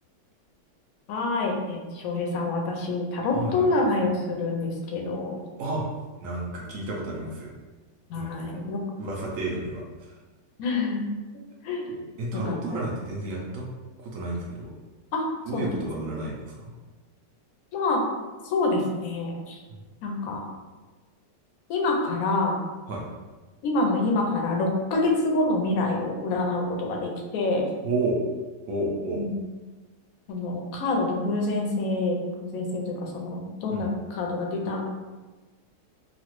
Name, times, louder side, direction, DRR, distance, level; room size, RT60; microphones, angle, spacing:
voice 1, 1.1-5.4 8.1-8.8 10.6-11.1 11.6-11.9 12.5-12.6 15.1-15.2 15.5-15.7 17.7-18.0 18.5-19.6 20.0-20.4 21.7-22.6 23.6-27.7 29.2-29.3 30.3-34.8, left 2 dB, 70° left, 0 dB, 0.9 m, -26 dB
voice 2, 3.3-3.7 5.6-5.9 6.2-7.6 8.2-8.6 9.0-10.2 11.9-13.7 14.0-14.7 15.5-16.7 19.7-19.8 22.9-23.0 27.8-28.2 28.7-29.3 33.7-33.9, right 2 dB, 70° right, -3 dB, 0.8 m, -31 dB
3.1 x 2.4 x 3.0 m, 1.2 s
omnidirectional pair, 1.9 m